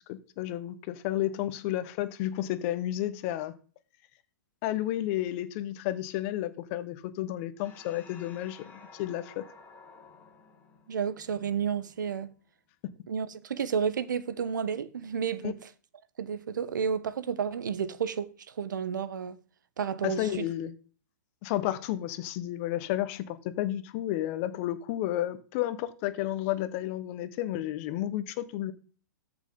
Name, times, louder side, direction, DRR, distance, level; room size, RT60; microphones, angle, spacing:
voice 1, 0.1-3.5 4.6-9.4 15.4-15.5 20.0-20.7 21.4-28.7, left 13 dB, 40° left, 1.2 m, -32 dB
sound 1, 7.6-12.4, left 4 dB, 20° left, 5.8 m, -53 dB
voice 2, 10.9-12.3 13.1-15.6 16.2-18.3 18.6-19.4 19.8-20.4, right 7 dB, 75° right, 1.0 m, -31 dB
14.0 x 6.1 x 3.9 m
hypercardioid pair, 125°, 10 cm